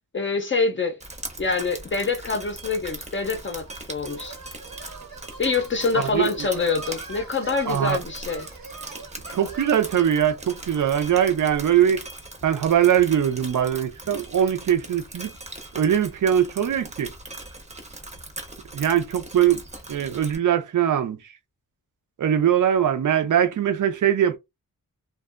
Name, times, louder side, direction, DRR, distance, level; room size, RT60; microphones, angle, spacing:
voice 1, 0.1-1.0 1.4-4.3 5.4-8.5, left 4 dB, 35° left, 0.5 m, -25 dB
Drip, 1.0-20.4, right 2 dB, 20° right, 0.6 m, -40 dB
sound 1, 3.1-11.2, right 4 dB, 90° right, 1.2 m, -44 dB
voice 2, 5.9-6.3 7.7-8.0 9.3-12.1 12.4-15.4 15.7-17.1 18.7-19.6 19.9-21.2 22.2-24.4, right 9 dB, 65° right, 0.5 m, -21 dB
2.6 x 2.3 x 2.4 m
wide cardioid pair, 120°, 34 cm